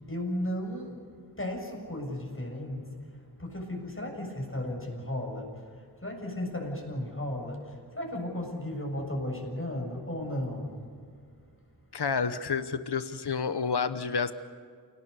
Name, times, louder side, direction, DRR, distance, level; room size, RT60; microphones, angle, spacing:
voice 1, 0.1-1.0 1.4-2.8 3.4-10.7, left 1 dB, 30° left, 1 dB, 7.1 m, -35 dB
voice 2, 11.9-14.3, left 5 dB, 75° left, 11 dB, 1.0 m, -29 dB
29.0 x 18.5 x 6.9 m, 2.1 s
wide cardioid pair, 45°, 41 cm